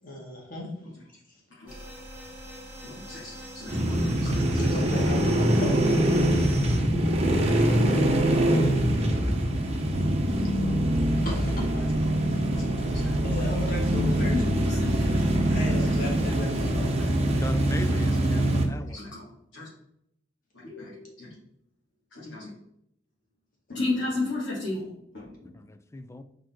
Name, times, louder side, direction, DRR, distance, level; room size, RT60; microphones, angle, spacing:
voice 1, 0.0-0.7 1.3-1.4 1.7-1.8 3.3-3.4 4.5-6.2 10.4-10.5 11.2-11.9 13.2-14.8 15.0-16.9, left 2 dB, 50° left, 2.1 m, -36 dB
sound 1, 1.7-6.8, right 1 dB, 10° right, 1.4 m, -42 dB
voice 2, 2.8-4.5 4.8-4.9 8.0-8.3 11.8-12.0 12.5-13.5 14.3-16.4 16.9-17.6 18.0-19.7 20.5-21.4 22.1-22.5 23.7-25.5, left 2 dB, 80° left, 2.6 m, -36 dB
sound 2, 3.7-18.6, right 1 dB, 35° right, 1.0 m, -24 dB
voice 3, 17.4-19.0 25.6-26.2, left 2 dB, 15° left, 0.4 m, -39 dB
5.1 x 4.2 x 4.5 m
head